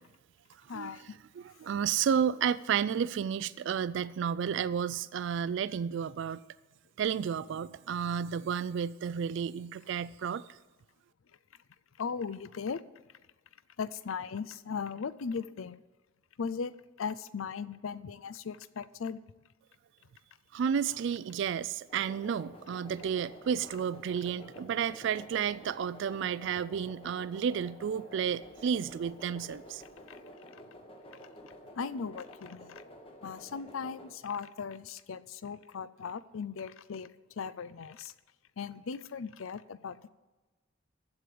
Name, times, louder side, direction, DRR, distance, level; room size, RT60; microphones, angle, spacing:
voice 1, 0.7-1.2 12.0-12.8 13.8-15.8 16.4-16.7 17.0-19.2 30.1-30.2 30.5-30.6 31.1-32.8 33.2-37.1 37.4-38.1 38.6-40.1, left 5 dB, 85° left, 0.5 m, -38 dB
voice 2, 1.4-6.4 7.0-10.6 20.5-29.8, right 7 dB, 65° right, 0.3 m, -32 dB
sound 1, 21.9-34.1, equal, 30° left, 1.3 m, -51 dB
14.5 x 4.9 x 7.8 m
head